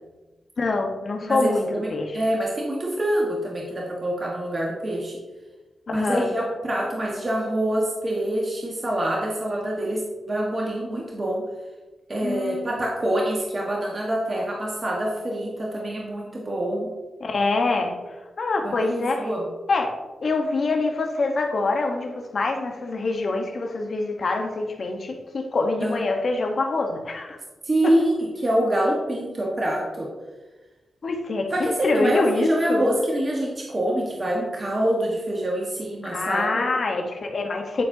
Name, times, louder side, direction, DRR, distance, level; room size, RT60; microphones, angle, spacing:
voice 1, 0.6-2.2 5.9-6.3 12.2-12.7 17.2-17.9 18.4-19.2 19.7-19.9 20.2-27.4 31.0-31.5 31.8-32.8 36.0-37.8, left 3 dB, 60° left, 3 dB, 1.2 m, -25 dB
voice 2, 1.3-1.9 2.1-5.2 5.9-11.5 12.1-16.9 18.6-19.5 25.8-26.0 27.6-30.1 31.5-36.6, right 1 dB, 40° right, -3 dB, 1.6 m, -25 dB
11.5 x 4.3 x 2.9 m, 1.2 s
cardioid pair, 45°, 0 cm